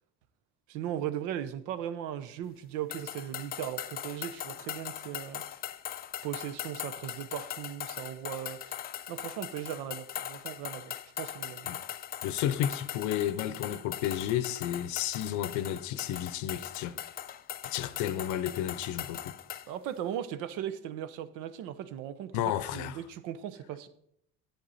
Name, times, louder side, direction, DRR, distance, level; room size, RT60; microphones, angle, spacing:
voice 1, 0.7-5.4 6.2-8.8 9.1-11.7 19.7-22.4 22.7-23.9, right 10 dB, 75° right, 0.8 m, -38 dB
sound 1, 2.9-19.7, left 11 dB, 30° left, 0.4 m, -40 dB
voice 2, 12.2-17.0 17.6-19.4 22.3-23.0, left 11 dB, 70° left, 0.7 m, -32 dB
10.5 x 7.8 x 4.2 m
cardioid pair, 130°, 30 cm